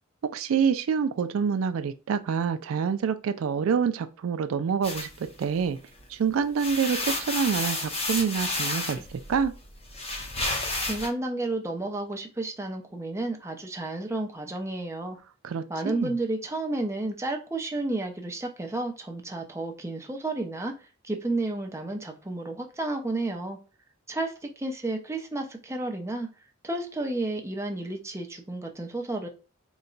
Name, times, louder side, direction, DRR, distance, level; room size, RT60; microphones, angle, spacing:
voice 1, 0.2-5.8 6.1-9.5 15.4-16.1, right 6 dB, 80° right, 0.4 m, -27 dB
sound 1, 4.8-6.0 6.4-11.1, left 2 dB, 30° left, 0.7 m, -31 dB
voice 2, 10.8-15.2 15.7-23.6 24.1-26.3 26.6-29.3, right 2 dB, 15° right, 0.7 m, -32 dB
4.0 x 2.2 x 3.8 m
head